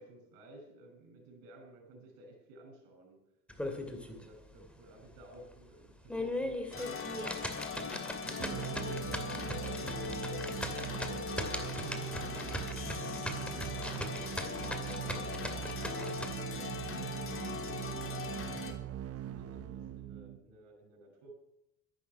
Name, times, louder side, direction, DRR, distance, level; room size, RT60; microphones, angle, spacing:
voice 1, 0.0-3.2 3.7-7.3 7.7-11.8 12.2-12.7 13.0-18.8 19.2-21.3, right 1 dB, 85° right, 3 dB, 5.8 m, -54 dB
sound 1, 3.5-4.2 4.6-4.7 5.2-5.3 5.9-16.3, left 1 dB, 5° left, 2.4 m, -39 dB
sound 2, 6.7-18.7, left 5 dB, 40° left, 3.0 m, -40 dB
sound 3, 8.4-20.4, right 11 dB, 45° right, 0.9 m, -41 dB
13.0 x 11.5 x 5.8 m, 0.86 s
cardioid pair, 95°, 34 cm